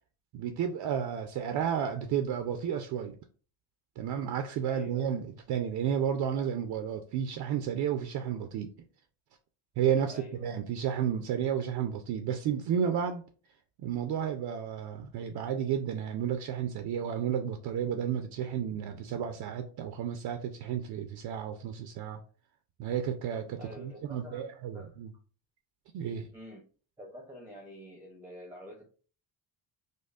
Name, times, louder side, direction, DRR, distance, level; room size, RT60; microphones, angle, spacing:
voice 1, 0.3-3.2 4.0-8.7 9.8-13.2 13.8-22.2 22.8-25.1 25.9-26.3, right 8 dB, 65° right, 0.5 m, -32 dB
voice 2, 4.6-5.1 10.1-10.6 23.6-25.0 26.3-26.7 27.0-28.8, equal, 5° right, 0.6 m, -47 dB
5.2 x 2.1 x 2.4 m
cardioid pair, 160°, 42 cm